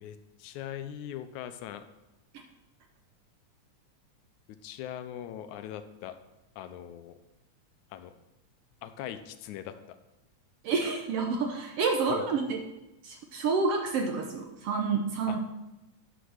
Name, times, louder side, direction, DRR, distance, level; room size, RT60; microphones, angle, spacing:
voice 1, 0.0-1.8 4.5-6.2 6.6-7.1 7.9-8.1 8.8-10.0 12.1-12.3 15.3-15.4, left 10 dB, 85° left, 10 dB, 2.0 m, -41 dB
voice 2, 10.6-12.6 13.0-15.4, right 4 dB, 70° right, 3 dB, 1.5 m, -29 dB
10.0 x 5.8 x 6.3 m, 0.98 s
omnidirectional pair, 3.4 m